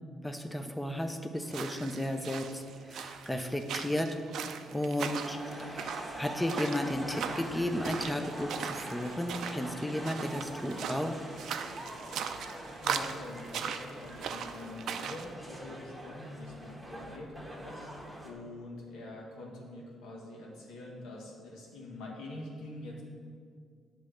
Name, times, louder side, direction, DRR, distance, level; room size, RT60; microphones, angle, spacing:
voice 1, 0.2-4.2 4.7-5.9 6.2-11.2, left 1 dB, 5° left, 5 dB, 0.5 m, -34 dB
sound 1, 1.4-15.3, right 7 dB, 75° right, 0.4 m, -39 dB
sound 2, 5.0-18.3, right 1 dB, 10° right, 1.2 m, -43 dB
voice 2, 12.8-23.0, left 1 dB, 90° left, -2 dB, 1.4 m, -45 dB
8.2 x 3.2 x 6.3 m, 2.1 s
cardioid pair, 90°, 0 cm